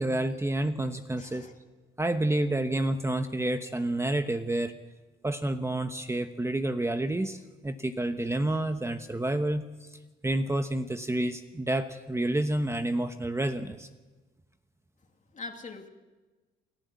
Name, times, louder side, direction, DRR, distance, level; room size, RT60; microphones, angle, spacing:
voice 1, 0.0-1.5 2.0-4.7 5.2-9.7 10.2-13.9, right 1 dB, 15° right, 8 dB, 1.0 m, -29 dB
voice 2, 1.2-1.5 15.3-15.9, left 3 dB, 40° left, 4 dB, 2.7 m, -42 dB
28.5 x 11.5 x 8.2 m, 1.2 s
cardioid pair, 90°, 20 cm